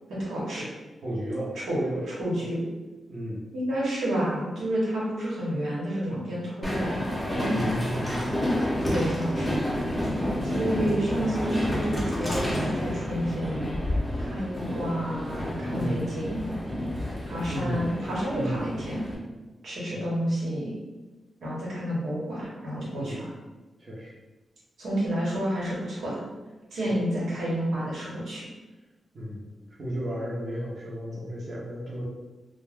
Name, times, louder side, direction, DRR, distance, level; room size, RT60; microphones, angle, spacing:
voice 1, 0.1-0.7 1.5-1.8 2.0-2.6 3.5-7.2 8.8-9.6 10.4-13.8 14.2-16.6 17.3-19.1 19.6-20.7 21.4-23.3 24.8-26.2 26.7-28.5, equal, 80° right, -6 dB, 1.0 m, -30 dB
voice 2, 1.0-2.0 2.4-2.5 3.1-3.4 7.5-8.2 15.7-16.0 17.5-17.8 18.3-18.6 19.9-20.0 22.9-23.2 23.8-24.1 26.8-27.0 29.1-29.5 29.8-32.0, equal, 40° right, -7 dB, 0.7 m, -33 dB
Train, 6.6-19.2, left 1 dB, 5° left, 0.6 m, -29 dB
2.3 x 2.1 x 3.4 m, 1.2 s
wide cardioid pair, 130°, 0 cm